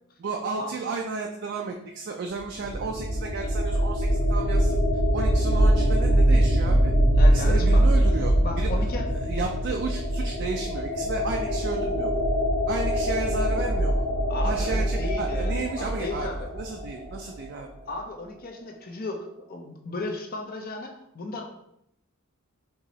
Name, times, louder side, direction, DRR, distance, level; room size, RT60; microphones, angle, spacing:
voice 1, 0.2-4.8 5.1-6.9 7.3-8.8 9.1-12.2 12.7-14.1 14.4-17.7, right 4 dB, 50° right, 2 dB, 0.3 m, -33 dB
sound 1, 2.4-17.2, right 1 dB, 20° left, 1.3 m, -23 dB
voice 2, 7.1-7.9 8.4-9.1 14.3-16.5 17.9-21.5, left 2 dB, 40° left, 3 dB, 0.5 m, -35 dB
4.6 x 2.9 x 2.8 m, 0.78 s
head